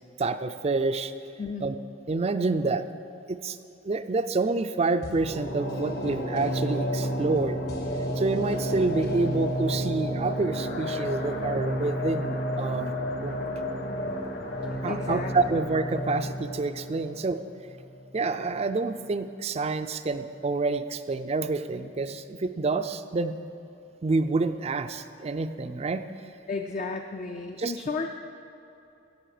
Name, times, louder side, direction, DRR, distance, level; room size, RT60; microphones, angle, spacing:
voice 1, 0.2-1.1 1.6-1.8 2.1-2.9 3.3-3.6 3.8-7.6 8.2-12.9 13.2-13.4 14.8-17.4 18.1-23.4 24.0-26.0 27.6-27.7, right 3 dB, 35° right, 10 dB, 0.4 m, -28 dB
voice 2, 1.4-1.7 14.8-15.6 26.5-28.1, left 4 dB, 40° left, 4 dB, 0.5 m, -33 dB
sound 1, 5.0-18.1 18.4-18.5, equal, 55° left, 1.2 m, -31 dB
17.0 x 7.2 x 4.9 m, 2.8 s
head